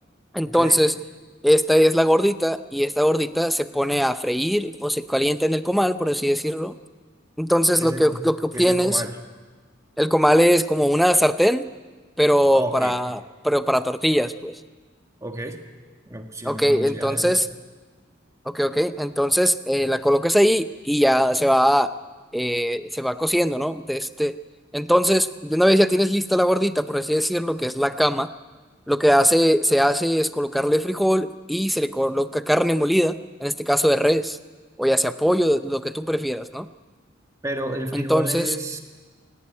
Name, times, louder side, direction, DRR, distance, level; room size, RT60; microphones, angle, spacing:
voice 1, 0.3-0.9 1.4-6.8 7.4-9.0 10.0-11.7 12.2-14.6 16.4-17.5 18.5-21.9 22.3-24.4 24.7-28.3 28.9-34.4 34.8-36.7 37.9-38.5, equal, ahead, 11 dB, 0.6 m, -21 dB
voice 2, 7.8-9.2 12.5-13.0 15.2-15.6 16.1-17.4 35.2-35.3 37.4-38.8, right 1 dB, 15° right, 4 dB, 1.7 m, -31 dB
20.0 x 18.0 x 9.7 m, 1.4 s
head